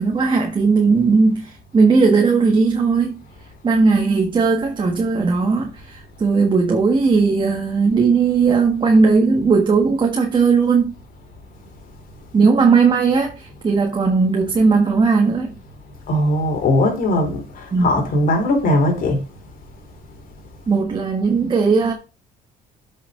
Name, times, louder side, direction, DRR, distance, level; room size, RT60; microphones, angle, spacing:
voice 1, 0.0-3.2 3.6-10.9 12.3-15.5 17.7-17.9 20.7-21.9, right 4 dB, 30° right, 1.5 m, -17 dB
voice 2, 16.1-19.2, left 1 dB, 55° left, 3.7 m, -19 dB
8.0 x 6.0 x 3.8 m
cardioid pair, 110°, 17 cm